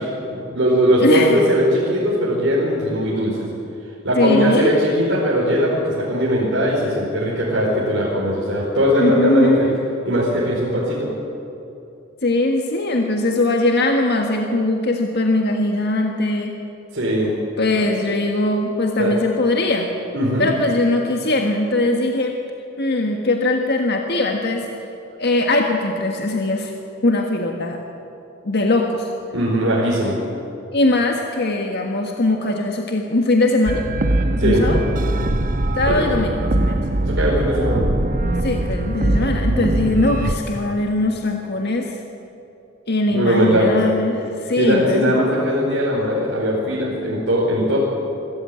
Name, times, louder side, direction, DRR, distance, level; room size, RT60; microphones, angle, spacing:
voice 1, 0.0-3.4 4.0-9.7 10.0-11.1 16.9-17.3 17.8-17.9 19.0-19.1 20.1-20.5 29.3-30.2 34.4-34.6 35.9-36.1 37.0-37.8 43.1-43.8 44.6-47.8, equal, 65° right, -6 dB, 4.8 m, -19 dB
voice 2, 1.0-1.4 4.1-4.7 9.0-9.8 12.2-16.6 17.6-19.9 20.4-22.4 22.8-24.7 25.2-26.7 27.0-27.8 28.4-29.1 30.7-33.8 34.4-34.8 35.8-36.8 38.4-42.0 42.9-45.2, left 2 dB, 55° left, 2 dB, 1.6 m, -20 dB
sound 1, 33.7-40.3, right 1 dB, 45° right, 1.2 m, -21 dB
25.5 x 14.5 x 9.0 m, 2.7 s
head